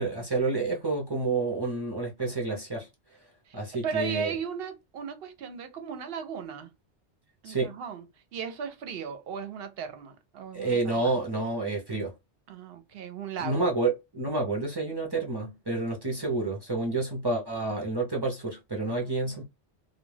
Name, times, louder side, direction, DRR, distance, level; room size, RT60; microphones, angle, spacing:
voice 1, 0.0-2.9 3.5-4.3 7.4-7.7 10.5-12.1 13.4-19.4, right 3 dB, 30° right, 0.5 m, -29 dB
voice 2, 3.5-6.7 7.4-8.1 8.3-11.2 12.5-13.7 16.2-16.3 18.9-19.4, right 7 dB, 65° right, 0.8 m, -37 dB
2.2 x 2.2 x 3.1 m
omnidirectional pair, 1.2 m